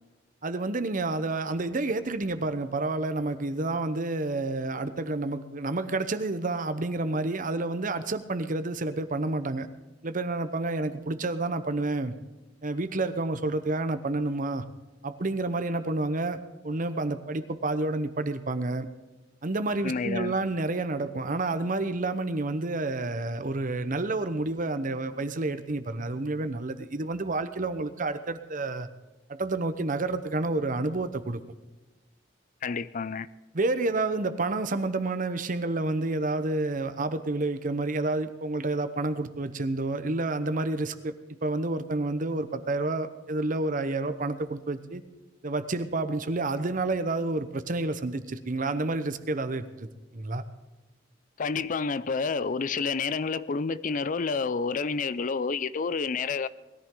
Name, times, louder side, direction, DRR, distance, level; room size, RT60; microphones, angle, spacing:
voice 1, 0.4-9.7 10.0-12.1 12.6-14.6 15.0-18.9 19.4-28.9 29.3-31.4 33.5-41.1 41.4-45.0 45.4-49.9 50.1-50.4, right 2 dB, 45° right, 11 dB, 0.9 m, -29 dB
voice 2, 19.8-20.3 32.6-33.3 51.4-56.5, left 4 dB, 45° left, 16 dB, 0.5 m, -29 dB
20.5 x 14.0 x 3.8 m, 1.1 s
head